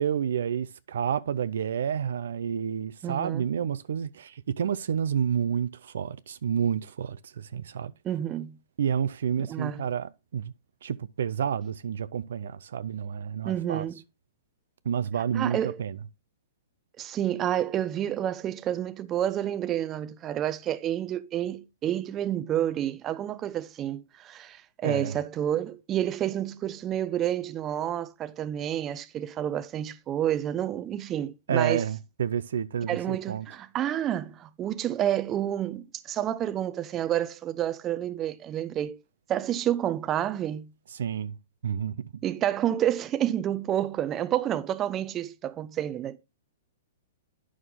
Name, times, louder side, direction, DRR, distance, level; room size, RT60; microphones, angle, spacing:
voice 1, 0.0-7.9 8.8-10.5 10.8-13.9 14.8-16.0 24.8-25.2 31.5-33.5 40.9-41.4 41.6-42.0, right 8 dB, 75° right, 0.5 m, -29 dB
voice 2, 3.0-3.5 8.0-8.6 9.5-9.8 13.4-14.0 15.3-15.8 17.0-31.8 32.9-39.0 39.3-40.7 42.2-46.2, right 11 dB, 25° right, 0.6 m, -29 dB
9.2 x 6.3 x 3.7 m
hypercardioid pair, 130°, 0 cm